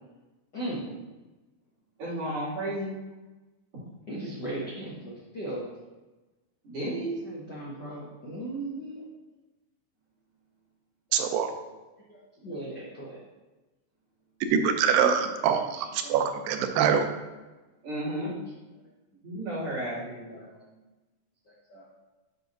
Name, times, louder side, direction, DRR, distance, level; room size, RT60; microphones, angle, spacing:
voice 1, 2.0-2.9 6.6-7.1 17.8-18.3 19.2-20.4, right 1 dB, 45° right, -9 dB, 3.2 m, -32 dB
voice 2, 4.1-5.6 7.2-9.1 11.1-11.2 12.1-13.2 15.6-16.2 18.2-18.3 19.7-20.6 21.5-22.0, right 1 dB, 65° left, -7 dB, 1.0 m, -38 dB
voice 3, 11.1-11.5 14.5-17.1, right 7 dB, 85° right, 6 dB, 2.3 m, -24 dB
8.2 x 5.6 x 2.6 m, 1.1 s
omnidirectional pair, 3.9 m